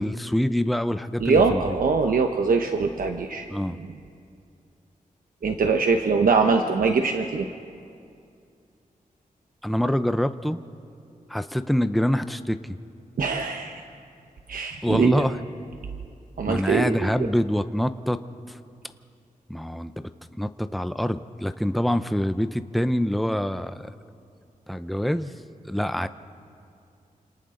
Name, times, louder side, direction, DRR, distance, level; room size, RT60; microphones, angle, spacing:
voice 1, 0.0-1.8 3.5-3.8 9.6-10.6 11.3-12.8 14.8-15.4 16.5-18.2 18.5-18.6 19.5-19.9 20.4-23.9 24.7-25.3 25.6-26.1, equal, ahead, 10 dB, 0.6 m, -25 dB
voice 2, 1.2-3.5 5.4-7.5 13.2-13.8 14.5-15.2 16.4-17.3, right 4 dB, 75° right, 4 dB, 1.1 m, -22 dB
29.0 x 27.0 x 3.9 m, 2.4 s
wide cardioid pair, 105°, 15 cm